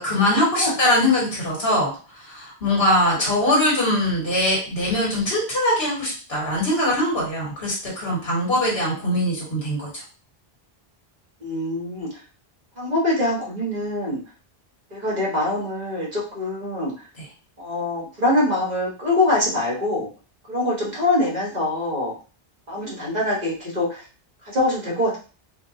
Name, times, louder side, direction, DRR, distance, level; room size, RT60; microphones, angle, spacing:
voice 1, 0.0-1.9 2.2-9.9, left 1 dB, 75° left, -4 dB, 1.8 m, -22 dB
voice 2, 11.4-12.2 12.7-14.2 14.9-16.9 17.6-20.1 20.5-22.1 22.7-24.0 24.4-25.2, left 2 dB, 45° right, -6 dB, 1.4 m, -24 dB
4.4 x 2.2 x 2.7 m, 0.36 s
omnidirectional pair, 1.0 m